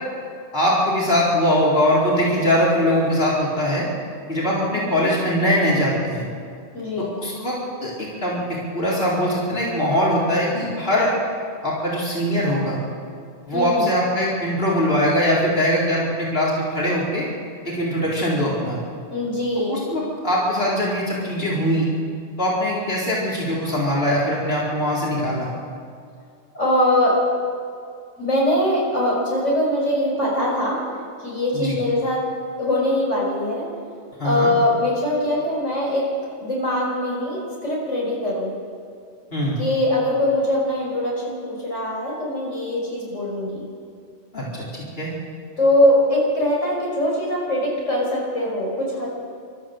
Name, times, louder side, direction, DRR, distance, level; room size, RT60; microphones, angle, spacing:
voice 1, 0.5-3.9 4.3-6.3 7.0-11.1 11.6-12.8 13.5-17.2 17.6-18.8 19.7-21.9 22.4-25.5 31.5-31.7 34.2-34.5 39.3-39.6 44.3-45.1, equal, 50° left, -6 dB, 4.5 m, -21 dB
voice 2, 4.7-5.1 6.7-7.2 13.5-13.9 19.1-19.8 26.5-27.2 28.2-30.8 31.2-32.3 32.6-33.7 34.2-36.1 36.4-38.5 39.6-43.7 45.6-49.1, left 1 dB, 85° left, -3 dB, 6.0 m, -22 dB
28.5 x 13.5 x 7.8 m, 2.3 s
omnidirectional pair, 1.2 m